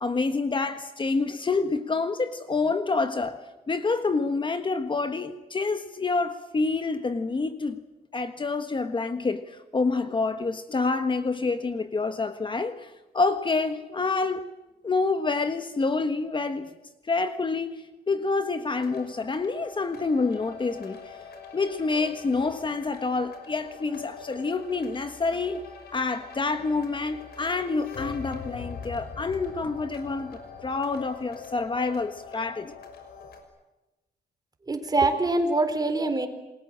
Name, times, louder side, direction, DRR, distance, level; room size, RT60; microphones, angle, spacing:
voice 1, 0.0-3.4 3.7-7.8 8.1-14.5 14.8-16.7 17.1-21.0 21.5-25.6 25.9-32.7, left 3 dB, 30° left, 9 dB, 1.5 m, -27 dB
sound 1, 18.7-33.4, left 6 dB, 85° left, 5.9 m, -43 dB
voice 2, 34.7-36.3, right 2 dB, 25° right, 8 dB, 4.0 m, -24 dB
28.5 x 21.5 x 7.6 m, 1.1 s
cardioid pair, 115°, 16 cm